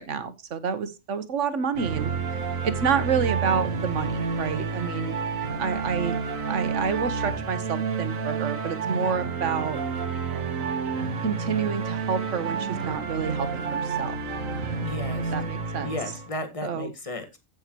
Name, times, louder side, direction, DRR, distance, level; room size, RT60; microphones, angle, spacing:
voice 1, 0.0-2.1 2.6-5.2 5.6-6.2 6.5-9.8 11.2-14.2 15.3-15.9 16.6-16.9, right 6 dB, 65° right, 1.4 m, -28 dB
sound 1, 1.7-16.3, right 5 dB, 85° right, 1.7 m, -30 dB
voice 2, 14.8-15.3 15.8-17.4, left 2 dB, 25° left, 1.6 m, -34 dB
15.0 x 6.4 x 3.0 m
omnidirectional pair, 1.3 m